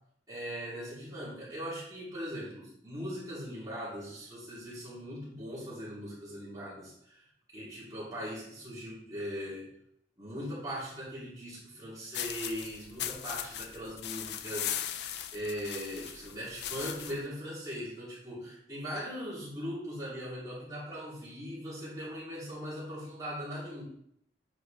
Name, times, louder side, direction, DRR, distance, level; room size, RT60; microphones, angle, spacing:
voice 1, 0.3-7.2 7.5-9.7 10.2-23.8, equal, 20° right, -8 dB, 3.2 m, -40 dB
sound 1, 12.1-17.3, left 10 dB, 65° left, 0.4 m, -38 dB
8.0 x 5.2 x 3.4 m, 0.72 s
head